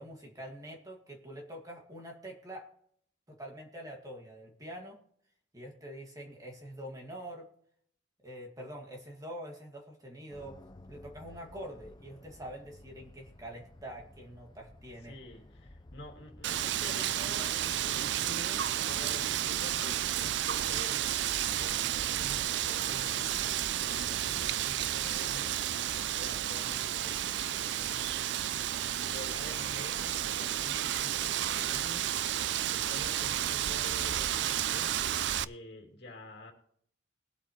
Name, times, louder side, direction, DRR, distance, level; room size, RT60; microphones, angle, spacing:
voice 1, 0.0-2.7 3.3-5.0 5.5-7.5 8.2-10.6 10.9-15.2, equal, 20° right, 1 dB, 2.0 m, -45 dB
sound 1, 10.3-24.4, left 1 dB, 25° left, 0.6 m, -55 dB
voice 2, 15.0-21.1 21.6-23.4 23.7-27.9 29.0-32.1 32.7-34.9 35.4-36.5, left 1 dB, 60° left, 2 dB, 2.6 m, -48 dB
Wind, 16.4-35.4, right 11 dB, 65° right, 0.4 m, -32 dB
21.5 x 8.3 x 3.1 m, 0.65 s
head